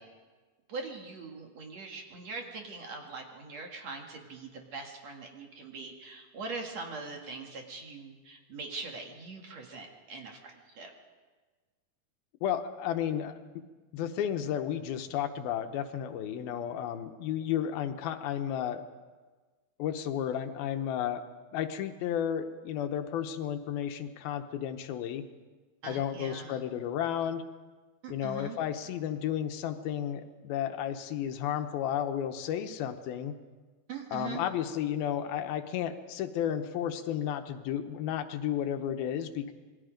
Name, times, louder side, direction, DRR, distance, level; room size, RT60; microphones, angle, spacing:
voice 1, 0.7-10.9 25.8-26.6 28.0-28.6 33.9-34.4, right 4 dB, 50° right, 2 dB, 2.6 m, -42 dB
voice 2, 12.4-13.4 13.9-18.8 19.8-21.2 21.5-25.2 25.8-27.4 28.1-33.3 34.1-39.5, left 9 dB, 80° left, 7 dB, 2.8 m, -33 dB
27.0 x 21.0 x 5.2 m, 1.3 s
omnidirectional pair, 4.4 m